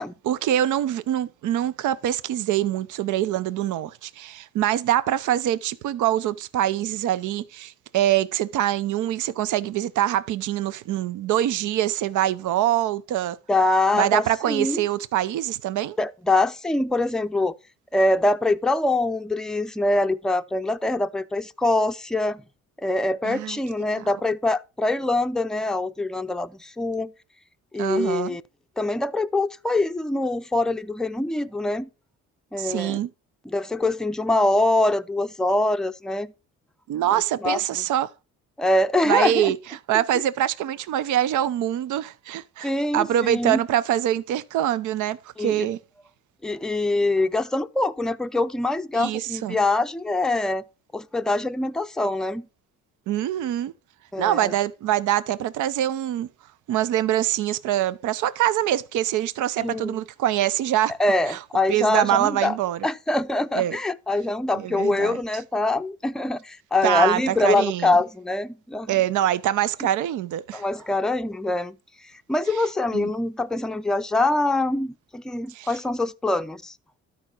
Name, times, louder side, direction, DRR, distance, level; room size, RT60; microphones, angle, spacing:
voice 1, 0.3-13.4 13.9-16.0 23.2-23.6 27.8-28.4 32.6-33.1 36.9-38.1 39.0-39.6 39.9-45.8 48.9-49.6 53.1-53.7 54.2-56.3 56.7-61.0 61.3-61.4 61.7-62.9 63.5-63.8 64.6-65.2 66.8-68.0 68.9-70.6 72.9-73.1 75.5-75.7, right 12 dB, 80° right, 0.7 m, -24 dB
voice 2, 13.5-14.8 16.0-17.5 17.9-22.4 22.8-27.1 27.7-28.4 28.8-31.9 32.5-33.0 33.5-36.3 37.1-37.2 37.4-37.6 38.6-39.5 42.6-43.6 45.4-45.7 46.4-50.6 50.9-52.5 54.1-54.5 59.6-60.0 61.0-62.6 62.8-68.9 70.5-71.8 72.3-76.7, left 2 dB, ahead, 0.5 m, -24 dB
12.5 x 5.0 x 4.5 m
cardioid pair, 90°, 30 cm